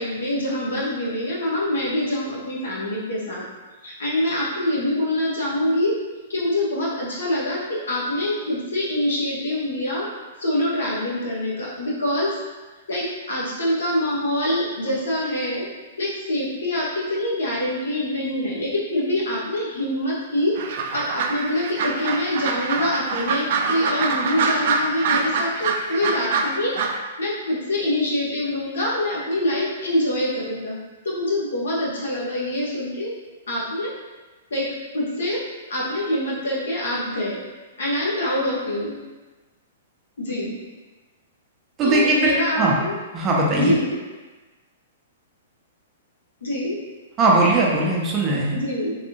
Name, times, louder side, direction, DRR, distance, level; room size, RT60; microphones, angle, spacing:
voice 1, 0.0-3.5 3.8-5.9 6.3-10.1 10.4-12.3 12.9-15.7 16.0-20.5 20.9-26.8 27.2-30.8 31.0-33.1 33.5-33.9 34.5-34.7 34.9-35.4 35.7-37.4 37.8-39.0 40.2-40.6 41.8-42.9 43.6-44.0 46.4-46.8 48.5-49.0, left 1 dB, 75° left, -5 dB, 1.1 m, -25 dB
sound 1, 20.6-27.0, right 4 dB, 55° right, 0.3 m, -25 dB
voice 2, 41.8-42.8 43.1-43.7 47.2-48.6, right 2 dB, 25° right, -3 dB, 0.7 m, -19 dB
3.3 x 2.5 x 2.9 m, 1.2 s
figure-of-eight pair, 115°, 0 cm